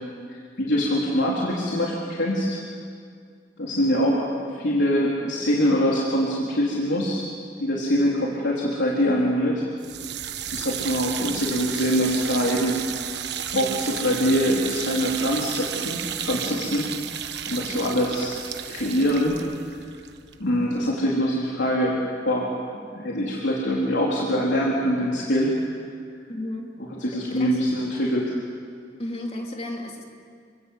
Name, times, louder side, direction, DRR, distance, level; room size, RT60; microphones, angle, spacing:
voice 1, 0.3-2.6 3.6-7.3 7.6-9.6 10.5-12.8 13.2-16.9 17.5-18.4 18.7-19.4 20.4-22.0 22.3-22.5 22.9-25.5 27.0-28.3, equal, 85° left, -4 dB, 3.7 m, -24 dB
sound 1, 9.8-20.9, right 9 dB, 70° right, 1.2 m, -33 dB
voice 2, 26.3-26.7 27.1-27.7 29.0-30.0, left 1 dB, 35° left, 1 dB, 3.3 m, -33 dB
29.0 x 24.5 x 8.3 m, 2.2 s
head